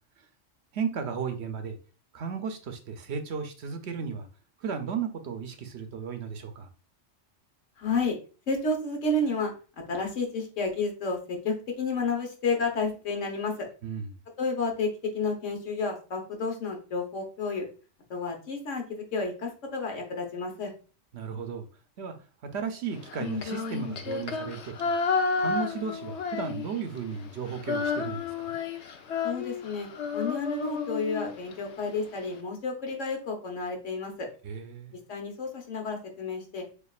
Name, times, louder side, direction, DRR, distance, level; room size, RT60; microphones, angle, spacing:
voice 1, 0.7-1.8 2.1-4.3 4.6-6.7 13.8-14.1 21.1-21.6 22.0-22.1 22.5-24.7 25.4-28.6 34.4-34.9, right 6 dB, 65° right, 0.9 m, -34 dB
voice 2, 7.8-8.2 8.5-9.5 9.9-13.7 14.4-17.6 18.1-20.7 29.2-34.3 35.1-36.6, left 3 dB, 85° left, 1.5 m, -31 dB
Female singing, 23.1-27.0 27.3-31.5, left 5 dB, 70° left, 0.9 m, -31 dB
6.9 x 2.4 x 2.4 m
omnidirectional pair, 1.2 m